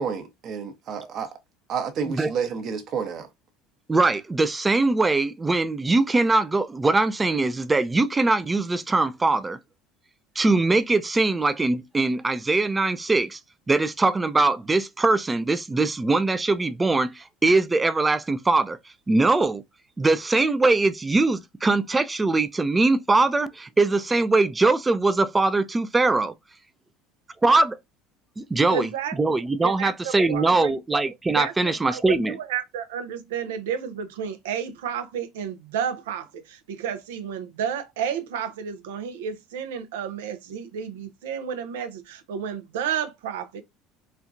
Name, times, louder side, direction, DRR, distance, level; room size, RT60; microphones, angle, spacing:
voice 1, 0.0-1.4 1.7-3.3, right 6 dB, 50° right, 0.9 m, -30 dB
voice 2, 3.9-9.6 10.4-13.4 13.7-18.8 19.1-19.6 20.0-26.3 27.4-27.8 28.4-28.9 29.2-32.3, right 3 dB, 15° right, 0.4 m, -22 dB
voice 3, 28.7-29.3 29.6-30.8 31.3-43.6, right 8 dB, 90° right, 0.6 m, -31 dB
4.3 x 2.3 x 2.5 m
supercardioid pair, 95°, 0 cm